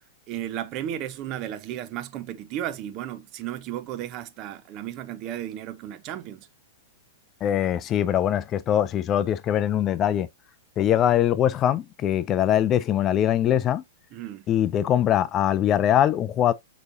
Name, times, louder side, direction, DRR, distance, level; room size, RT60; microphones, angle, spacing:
voice 1, 0.3-6.5 14.1-14.5, right 11 dB, 40° right, 0.6 m, -34 dB
voice 2, 7.4-10.3 10.8-13.8 14.5-16.5, left 10 dB, 30° left, 0.4 m, -22 dB
6.5 x 3.0 x 2.5 m
hypercardioid pair, 125°, 0 cm